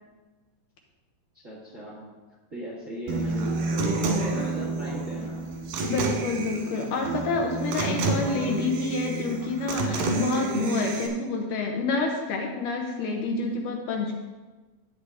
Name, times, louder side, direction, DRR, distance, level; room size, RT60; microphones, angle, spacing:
voice 1, 1.3-2.1 2.5-5.4, right 1 dB, 30° right, -5 dB, 1.5 m, -37 dB
Human voice / Acoustic guitar, 3.1-11.1, right 3 dB, 90° right, 3.3 m, -29 dB
voice 2, 5.8-14.1, left 3 dB, 70° left, 2 dB, 2.3 m, -28 dB
11.5 x 8.7 x 3.5 m, 1.3 s
omnidirectional pair, 4.1 m